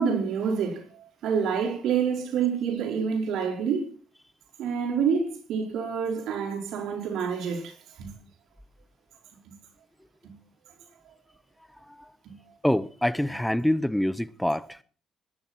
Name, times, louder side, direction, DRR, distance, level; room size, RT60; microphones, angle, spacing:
voice 1, 0.0-3.9 4.6-8.1 10.2-10.3 12.2-12.3, right 6 dB, 80° right, 5.1 m, -27 dB
voice 2, 12.6-14.8, left 1 dB, 5° left, 0.7 m, -25 dB
19.5 x 11.0 x 4.5 m
cardioid pair, 90°, 0 cm